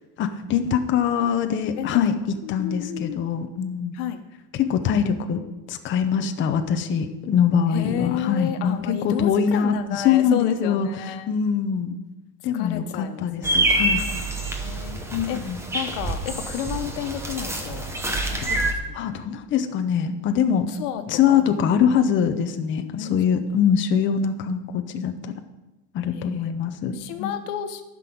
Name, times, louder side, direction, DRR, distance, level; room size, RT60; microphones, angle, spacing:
voice 1, 0.2-2.2 2.5-4.0 4.5-5.4 5.7-12.0 12.4-14.1 15.1-15.6 18.4-20.7 21.1-25.3 25.9-27.4, left 7 dB, 25° left, 7 dB, 0.7 m, -23 dB
voice 2, 2.4-3.2 3.9-4.2 7.7-11.3 12.5-14.0 14.4-15.0 15.3-15.4 15.7-18.7 19.0-19.1 20.7-21.6 22.9-23.2 23.5-23.6 26.1-26.5 26.9-27.8, left 10 dB, 80° left, 8 dB, 1.2 m, -32 dB
sound 1, 13.4-18.7, right 2 dB, 5° right, 0.8 m, -26 dB
11.5 x 6.1 x 8.5 m, 1.1 s
cardioid pair, 170°, 46 cm